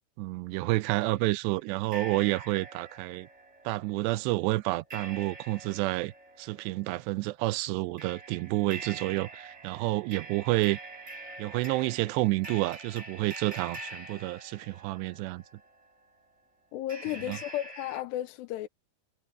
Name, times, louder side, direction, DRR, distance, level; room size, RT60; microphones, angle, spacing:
voice 1, 0.2-3.3 3.7-6.1 6.4-10.8 11.4-15.4 17.3-17.4, right 20 dB, 85° right, 2.8 m, -29 dB
sound 1, 1.1-1.2 1.9-15.9 16.9-18.0, right 2 dB, 20° right, 3.0 m, -45 dB
voice 2, 16.7-18.7, left 13 dB, 90° left, 3.0 m, -34 dB
omnidirectional pair, 4.8 m